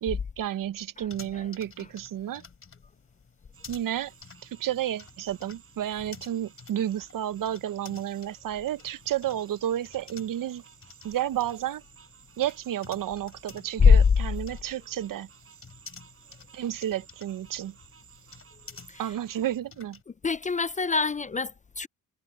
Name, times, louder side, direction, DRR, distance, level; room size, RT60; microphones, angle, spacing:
voice 1, 0.0-2.4 3.7-4.1 4.4-10.6 11.0-11.8 12.4-15.3 16.5-17.7 19.0-20.0, right 11 dB, 70° right, 0.8 m, -31 dB
sound 1, 1.1-20.0, left 5 dB, 40° left, 4.3 m, -52 dB
sound 2, 3.5-19.6, right 8 dB, 40° right, 4.6 m, -56 dB
voice 2, 20.2-21.9, left 5 dB, 25° left, 0.4 m, -22 dB
cardioid pair, 100°, 34 cm